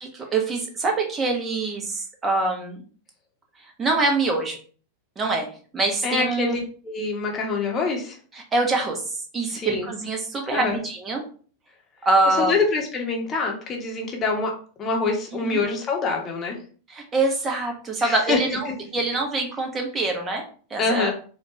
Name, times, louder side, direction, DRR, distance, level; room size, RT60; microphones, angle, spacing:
voice 1, 0.0-2.8 3.8-4.6 5.2-5.5 5.7-6.6 8.3-11.2 12.0-12.5 15.4-15.6 16.9-20.4 20.7-21.1, right 3 dB, 20° right, 2 dB, 1.1 m, -24 dB
voice 2, 6.0-8.2 9.5-9.9 10.5-10.8 12.3-16.6 18.0-18.4 20.8-21.1, left 4 dB, 25° left, 0 dB, 1.1 m, -25 dB
4.2 x 2.6 x 3.1 m, 0.41 s
figure-of-eight pair, 90°, 0 cm